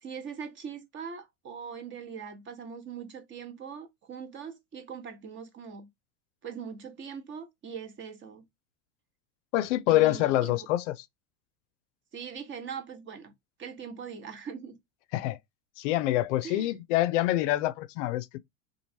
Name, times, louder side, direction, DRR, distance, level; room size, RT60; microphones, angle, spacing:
voice 1, 0.0-5.9 6.4-8.4 9.9-10.7 12.1-13.3 13.6-14.8 16.4-16.7, right 6 dB, 30° right, 0.9 m, -41 dB
voice 2, 9.5-11.0 15.1-15.4 15.8-18.4, left 15 dB, 70° left, 0.5 m, -26 dB
3.1 x 2.5 x 2.6 m
supercardioid pair, 115°, 38 cm